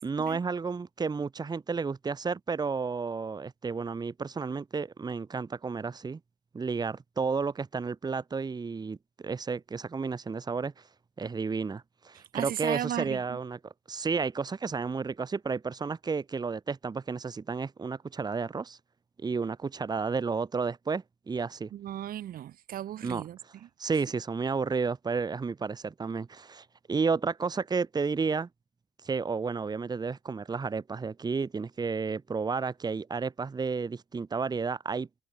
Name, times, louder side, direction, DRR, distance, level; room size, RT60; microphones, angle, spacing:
voice 1, 0.0-6.2 6.5-10.7 11.2-18.8 19.2-21.7 23.0-23.2 23.8-28.5 29.0-35.1, right 5 dB, 25° right, 1.7 m, -32 dB
voice 2, 12.2-13.4 21.7-23.7, right 12 dB, 60° right, 1.7 m, -36 dB
cardioid pair, 110°, 17 cm